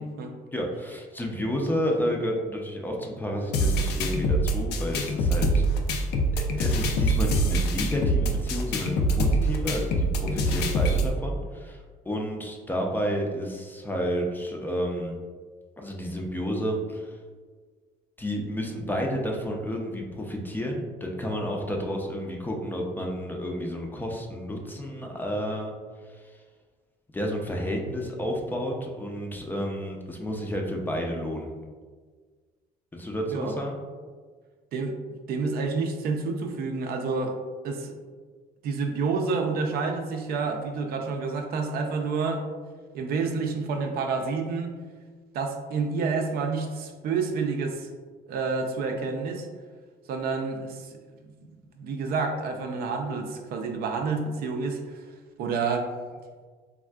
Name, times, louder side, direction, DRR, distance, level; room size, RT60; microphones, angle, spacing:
voice 1, 0.0-0.3 33.3-33.6 34.7-35.0 35.3-37.4 37.6-37.9 38.6-42.4 42.9-44.8 45.3-47.9 48.3-49.5 50.1-50.9 51.8-55.0 55.4-55.9, right 4 dB, 65° right, 4 dB, 0.4 m, -29 dB
voice 2, 0.5-5.6 6.3-15.2 15.8-17.2 18.2-25.7 26.1-26.4 27.1-31.5 32.9-33.8, equal, 10° left, 0 dB, 0.4 m, -31 dB
sound 1, 3.5-11.1, right 1 dB, 75° left, 0.4 m, -24 dB
3.5 x 2.4 x 2.2 m, 1.5 s
cardioid pair, 110°, 17 cm